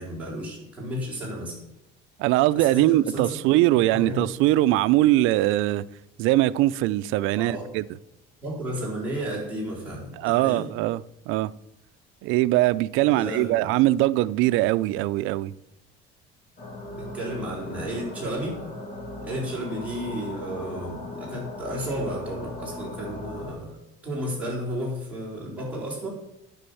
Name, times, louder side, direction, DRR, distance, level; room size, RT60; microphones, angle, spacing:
voice 1, 0.0-1.6 2.5-3.4 3.9-4.3 7.4-7.6 8.4-10.7 13.1-13.7 17.0-18.6 19.2-23.8 24.0-26.1, equal, 5° right, 4.6 m, -33 dB
voice 2, 2.2-5.8 6.2-7.8 10.2-11.5 12.2-15.5, right 16 dB, 75° right, 0.5 m, -21 dB
sound 1, 16.6-23.5, left 2 dB, 40° left, 3.1 m, -38 dB
10.0 x 6.1 x 7.1 m
cardioid pair, 155°, 21 cm